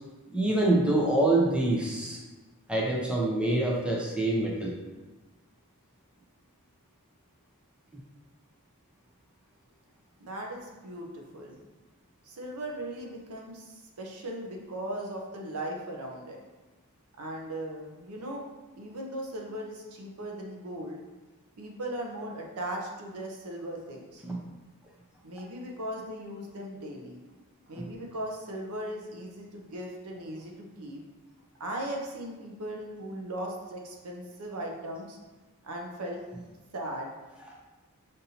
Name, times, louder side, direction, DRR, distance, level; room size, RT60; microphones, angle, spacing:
voice 1, 0.3-2.2 2.7-4.7 24.2-24.4 27.8-27.9, right 2 dB, 5° right, -3 dB, 0.5 m, -25 dB
voice 2, 10.2-11.6 12.2-16.4 17.2-18.5 18.8-21.0 21.6-24.2 25.2-27.2 27.7-31.0 31.6-35.2 35.6-36.2 36.7-37.1, right 1 dB, 85° right, 0 dB, 0.7 m, -38 dB
5.3 x 2.6 x 2.8 m, 1.2 s
head